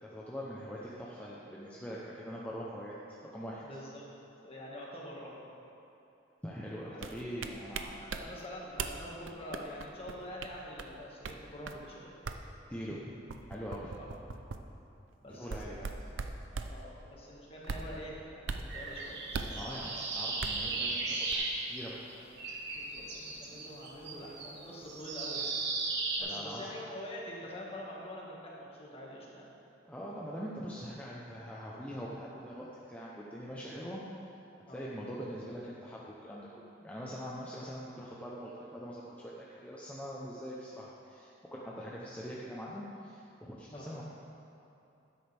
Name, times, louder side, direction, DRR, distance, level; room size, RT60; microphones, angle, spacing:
voice 1, 0.0-3.0 3.3-3.6 6.4-8.0 12.7-13.0 13.5-13.9 15.3-16.1 19.6-22.0 26.2-26.6 29.9-34.0 34.7-44.0, equal, 5° left, -6 dB, 0.8 m, -43 dB
voice 2, 3.6-4.0 4.4-5.4 6.9-7.0 7.4-7.6 7.9-12.1 14.0-14.1 15.2-15.9 16.6-20.0 20.6-21.0 22.7-25.5 26.2-29.5 34.7-34.8 43.7-43.9, equal, 30° left, -4 dB, 1.8 m, -46 dB
sound 1, 7.0-8.2 8.8-9.0 9.3-10.9 11.2-11.3 11.7-11.8 12.2-12.4 13.3-14.6 15.4-16.7 17.6-17.9 18.5-18.7 19.3-19.6 20.4-20.6 21.3-21.4, right 4 dB, 80° right, 0.6 m, -38 dB
sound 2, 18.7-22.1 22.4-26.2, right 3 dB, 60° right, 1.3 m, -36 dB
12.5 x 10.0 x 3.5 m, 2.8 s
head